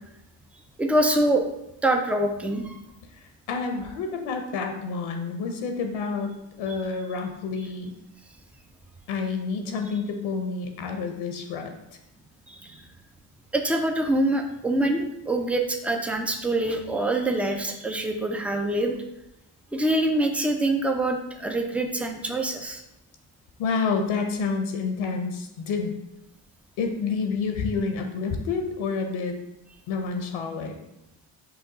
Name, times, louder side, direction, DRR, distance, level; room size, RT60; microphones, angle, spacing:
voice 1, 0.8-1.4 1.8-2.8 12.5-12.8 13.5-18.9 19.7-22.8, right 1 dB, 5° right, 4 dB, 0.3 m, -25 dB
voice 2, 3.5-7.9 9.1-11.7 23.6-25.9 26.8-29.3 29.9-30.8, left 4 dB, 70° left, 4 dB, 0.8 m, -29 dB
5.8 x 2.3 x 3.9 m, 0.86 s
cardioid pair, 90°, 50 cm